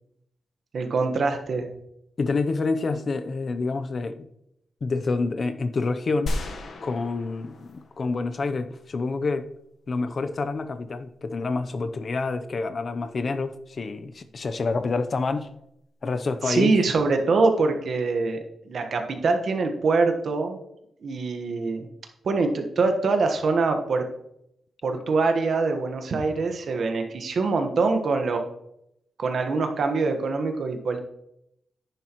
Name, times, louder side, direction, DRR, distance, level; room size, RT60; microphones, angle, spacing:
voice 1, 0.7-1.7 16.4-18.4 18.7-20.6 21.0-21.9 22.2-24.0 24.8-28.4 29.2-31.0, right 3 dB, 55° right, 1.3 m, -24 dB
voice 2, 2.2-4.3 4.8-6.4 6.8-9.5 9.9-15.5 16.0-16.8 24.9-25.0, left 3 dB, 40° left, 0.6 m, -28 dB
sound 1, 6.3-8.5, left 1 dB, 60° left, 1.2 m, -34 dB
10.5 x 10.0 x 3.0 m
wide cardioid pair, 160°, 0 cm